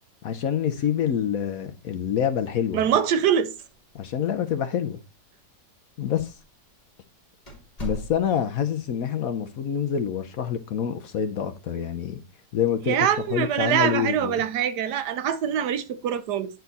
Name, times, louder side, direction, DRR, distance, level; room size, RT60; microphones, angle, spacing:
voice 1, 0.2-2.9 3.9-5.0 6.0-6.3 7.8-12.2 12.5-14.4, left 8 dB, 60° left, 1.0 m, -27 dB
voice 2, 2.7-3.5 12.9-16.5, right 9 dB, 75° right, 1.2 m, -24 dB
sound 1, 3.6-4.2 4.5-4.6 5.3-5.4 6.2-6.4 6.8-6.9 7.5-8.6, equal, 20° left, 2.7 m, -38 dB
9.2 x 4.5 x 4.0 m
omnidirectional pair, 1.9 m